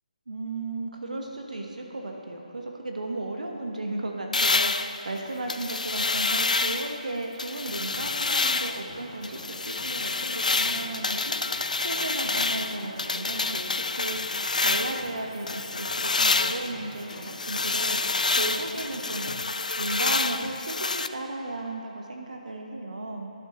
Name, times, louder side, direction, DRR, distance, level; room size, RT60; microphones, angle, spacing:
voice 1, 0.3-11.6 11.8-14.2 14.6-19.3 19.8-23.3, right 2 dB, 65° right, 1 dB, 1.2 m, -35 dB
sound 1, 4.3-7.0 7.4-8.9 9.2-15.1 15.5-21.1, left 3 dB, 65° left, 0.3 m, -28 dB
sound 2, 7.7-19.1, left 1 dB, 15° left, 2.4 m, -46 dB
13.0 x 11.5 x 3.1 m, 2.6 s
figure-of-eight pair, 145°, 4 cm